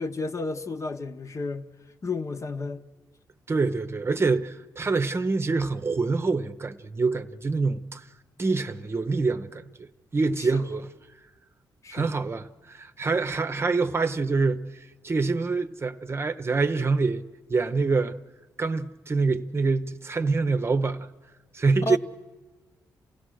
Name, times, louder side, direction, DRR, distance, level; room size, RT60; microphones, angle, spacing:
voice 1, 0.0-1.7 2.0-2.8 10.3-10.7 11.8-12.1 21.8-22.0, left 3 dB, 45° left, 1.0 m, -32 dB
voice 2, 3.5-8.0 8.4-9.9 10.1-10.9 11.9-17.2 17.5-18.2 18.6-21.1 21.5-22.0, right 4 dB, 35° right, 0.8 m, -26 dB
28.0 x 16.5 x 6.4 m
cardioid pair, 75°, 7 cm